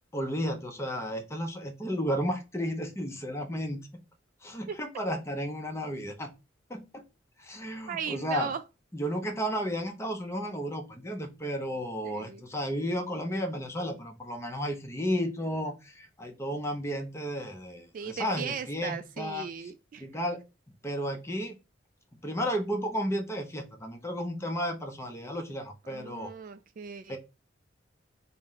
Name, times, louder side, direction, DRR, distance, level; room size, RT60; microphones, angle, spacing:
voice 1, 0.1-3.9 4.4-6.3 6.7-7.0 7.4-8.5 8.9-19.5 20.0-20.4 20.8-21.5 22.2-26.3 27.1-27.2, equal, 15° left, 0.6 m, -33 dB
voice 2, 7.9-8.6 12.0-12.4 17.9-20.1 25.9-27.2, right 6 dB, 45° right, 0.3 m, -37 dB
4.2 x 2.1 x 3.8 m
head